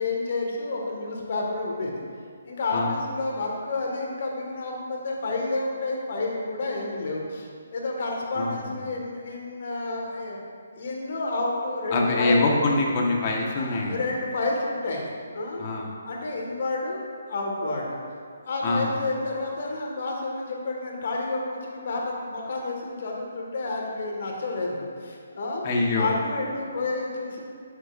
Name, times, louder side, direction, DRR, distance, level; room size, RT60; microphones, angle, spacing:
voice 1, 0.0-2.0 2.4-10.4 10.7-12.4 13.6-15.6 16.0-17.0 17.3-18.0 18.5-25.6 26.0-27.4, left 2 dB, 55° left, -1 dB, 1.9 m, -30 dB
voice 2, 8.4-8.8 11.9-14.0 15.6-15.9 18.6-18.9 25.6-26.1, left 2 dB, 35° left, -1 dB, 1.4 m, -24 dB
11.0 x 7.3 x 2.6 m, 2.1 s
hypercardioid pair, 150°, 0 cm